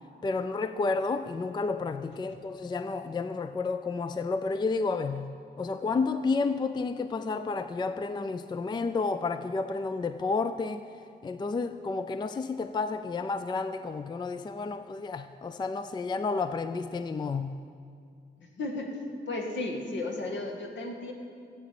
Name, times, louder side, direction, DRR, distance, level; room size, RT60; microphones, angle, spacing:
voice 1, 0.2-10.8 11.2-17.5, left 4 dB, 25° left, 0.4 m, -31 dB
voice 2, 18.4-18.9 19.3-21.1, left 2 dB, 75° left, 2.0 m, -34 dB
15.5 x 8.3 x 7.6 m
wide cardioid pair, 160°, 19 cm